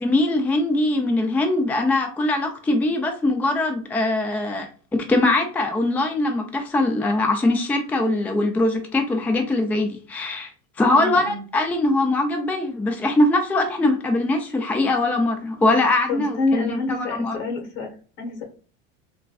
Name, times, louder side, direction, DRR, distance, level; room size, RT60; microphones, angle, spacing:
voice 1, 0.0-10.5 10.8-17.4, left 2 dB, 5° left, 4 dB, 0.3 m, -22 dB
voice 2, 10.9-11.4 16.1-18.4, left 3 dB, 80° left, 3 dB, 1.4 m, -27 dB
3.5 x 2.2 x 2.3 m, 0.39 s
supercardioid pair, 120°, 31 cm